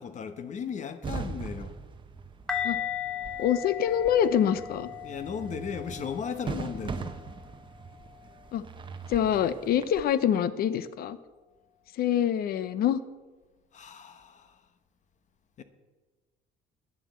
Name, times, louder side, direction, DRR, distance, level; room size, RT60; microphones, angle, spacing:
voice 1, 0.0-1.7 5.0-7.2 13.7-14.5 15.6-15.7, left 7 dB, 45° left, 1.1 m, -36 dB
sound 1, 1.0-10.0, right 5 dB, 30° right, 1.0 m, -41 dB
sound 2, 2.5-7.4 8.1-8.3, left 9 dB, 5° left, 1.2 m, -37 dB
voice 2, 3.4-4.9 8.5-8.6 9.1-11.2 12.0-13.0, left 9 dB, 65° left, 0.7 m, -25 dB
10.5 x 7.4 x 8.2 m
cardioid pair, 110°, 17 cm